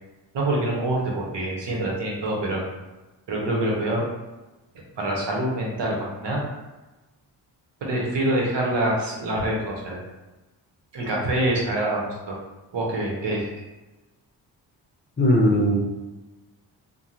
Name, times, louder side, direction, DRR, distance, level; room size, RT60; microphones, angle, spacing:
voice 1, 0.3-2.6 3.3-4.1 5.0-6.4 7.8-10.0 10.9-12.4 12.7-13.6, right 1 dB, 65° right, -2 dB, 1.0 m, -25 dB
voice 2, 15.2-15.8, equal, 25° left, -1 dB, 0.8 m, -18 dB
2.8 x 2.2 x 2.5 m, 1.1 s
supercardioid pair, 50°, 46 cm